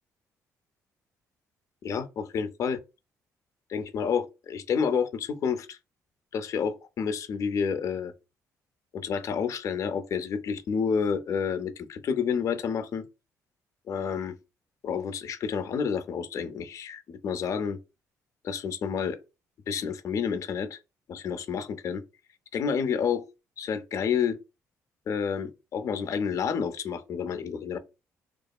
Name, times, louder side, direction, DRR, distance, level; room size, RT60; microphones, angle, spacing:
voice 1, 1.8-2.8 3.7-5.8 6.3-8.1 8.9-13.0 13.9-14.3 14.8-17.8 18.4-19.2 19.7-20.8 21.1-22.0 22.5-23.2 23.6-24.4 25.1-27.8, left 6 dB, 55° left, 0.4 m, -29 dB
2.8 x 2.4 x 2.2 m
cardioid pair, 90°, 6 cm